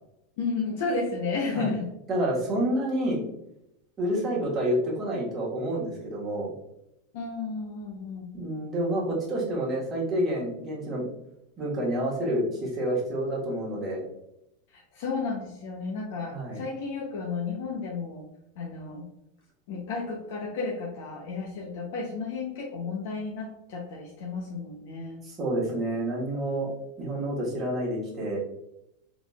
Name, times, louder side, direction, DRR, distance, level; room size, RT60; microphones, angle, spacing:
voice 1, 0.4-1.9 7.1-8.3 14.7-18.2 18.6-19.0 19.7-25.2, left 4 dB, 65° left, -2 dB, 0.8 m, -32 dB
voice 2, 2.1-3.2 4.0-6.5 8.3-11.1 11.6-14.0 16.3-16.6 25.2-26.7 27.0-28.4, right 1 dB, 25° right, -4 dB, 1.5 m, -28 dB
3.9 x 3.5 x 2.4 m, 0.83 s
supercardioid pair, 145°, 0 cm